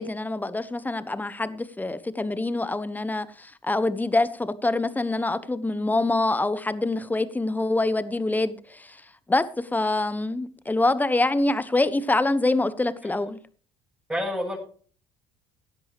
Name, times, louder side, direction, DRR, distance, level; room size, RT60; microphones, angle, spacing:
voice 1, 0.0-9.0 9.3-13.4, left 2 dB, 15° left, 1.2 m, -25 dB
voice 2, 14.1-14.6, equal, 10° right, 7.3 m, -29 dB
16.5 x 10.5 x 3.1 m
hypercardioid pair, 65°, 13 cm